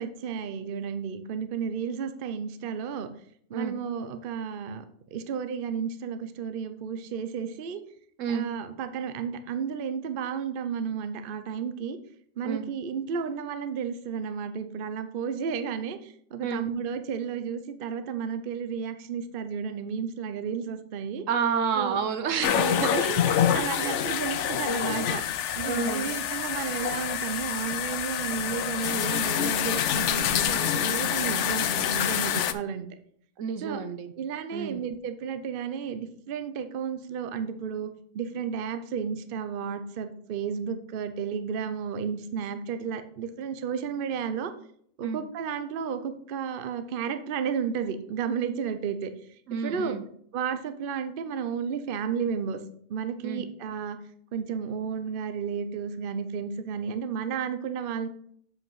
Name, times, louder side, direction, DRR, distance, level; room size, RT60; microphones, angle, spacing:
voice 1, 0.0-3.1 3.5-4.8 5.1-7.8 8.3-12.0 12.4-21.3 21.8-22.0 22.5-32.9 33.6-33.8 34.2-44.5 45.0-49.1 49.5-50.0 50.3-52.6 52.9-54.0 54.3-58.1, right 7 dB, 50° right, 10 dB, 0.7 m, -32 dB
voice 2, 21.3-22.9 23.8-24.0 25.7-26.1 33.4-34.1 34.5-34.8 45.0-45.2 49.5-50.0 53.2-53.4, right 6 dB, 70° right, 10 dB, 1.1 m, -30 dB
sound 1, 22.4-32.5, left 9 dB, 65° left, 0.9 m, -27 dB
7.6 x 5.1 x 4.6 m, 0.63 s
omnidirectional pair, 1.4 m